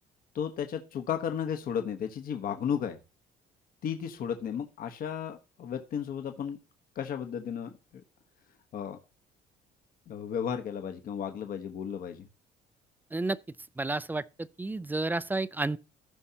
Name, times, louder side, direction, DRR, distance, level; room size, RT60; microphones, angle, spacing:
voice 1, 0.3-3.0 3.8-6.6 6.9-8.0 8.7-9.0 10.1-12.3, left 8 dB, 55° left, 1.1 m, -34 dB
voice 2, 13.8-15.8, right 2 dB, 10° right, 0.4 m, -31 dB
15.5 x 5.6 x 2.8 m
cardioid pair, 110°, 17 cm